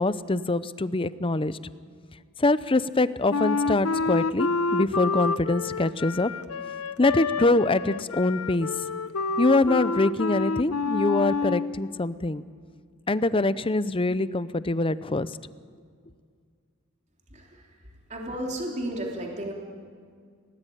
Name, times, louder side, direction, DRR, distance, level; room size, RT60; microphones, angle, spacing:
voice 1, 0.0-1.6 2.4-6.3 7.0-8.7 9.4-12.4 13.1-15.3, left 2 dB, 25° left, 15 dB, 0.7 m, -24 dB
Wind instrument woodwind instrument, 3.3-11.7, left 4 dB, 80° left, 0.8 m, -28 dB
voice 2, 17.3-17.6 18.1-19.5, right 1 dB, 35° right, 0 dB, 3.4 m, -33 dB
30.0 x 18.0 x 9.3 m, 2.1 s
head